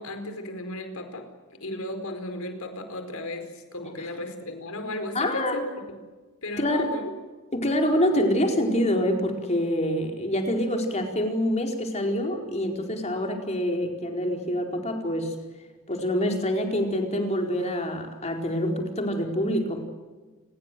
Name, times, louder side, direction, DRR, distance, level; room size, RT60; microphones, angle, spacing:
voice 1, 0.0-5.7 6.4-7.1, left 1 dB, 90° left, 8 dB, 4.7 m, -35 dB
voice 2, 5.1-5.6 6.6-6.9 7.5-15.3 15.9-19.8, equal, 30° left, 3 dB, 4.5 m, -26 dB
29.0 x 21.0 x 7.7 m, 1.3 s
head